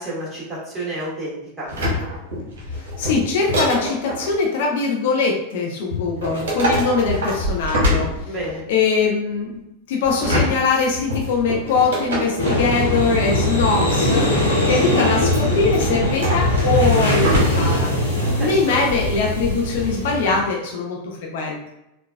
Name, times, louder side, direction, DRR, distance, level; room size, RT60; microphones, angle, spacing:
voice 1, 0.0-1.7 8.2-8.6 18.2-18.8, right 1 dB, 15° right, -6 dB, 1.5 m, -30 dB
sound 1, 1.7-4.3 5.9-8.7 10.0-12.7 14.7-17.8 18.2-18.3, left 1 dB, 60° right, 0.9 m, -24 dB
voice 2, 3.0-8.3 8.7-9.5 9.9-14.3 14.6-17.9 18.4-21.7, left 4 dB, 55° left, 0 dB, 0.5 m, -22 dB
sound 2, 12.4-20.4, left 1 dB, 75° left, 0.9 m, -21 dB
3.7 x 2.3 x 2.2 m, 0.87 s
figure-of-eight pair, 90°, 0 cm